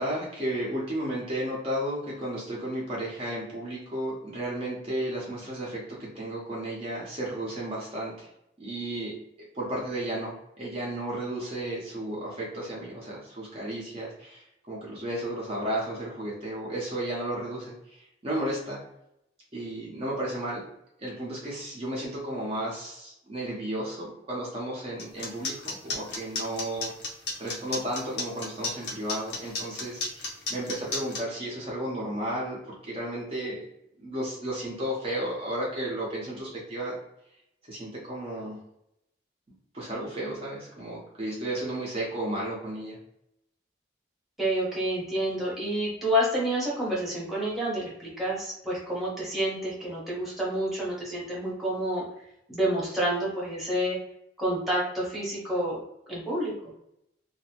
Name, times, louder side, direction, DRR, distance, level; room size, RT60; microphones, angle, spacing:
voice 1, 0.0-8.3 8.6-17.7 18.2-18.8 19.5-20.6 21.0-26.9 27.4-33.6 34.0-37.0 37.7-38.6 39.7-43.0, right 1 dB, 35° right, -5 dB, 0.7 m, -33 dB
sound 1, 25.0-31.2, left 3 dB, 65° left, 0.6 m, -32 dB
voice 2, 44.4-52.0 52.5-54.0 54.4-55.8 56.1-56.5, equal, ahead, -6 dB, 0.8 m, -29 dB
2.6 x 2.0 x 2.8 m, 0.79 s
head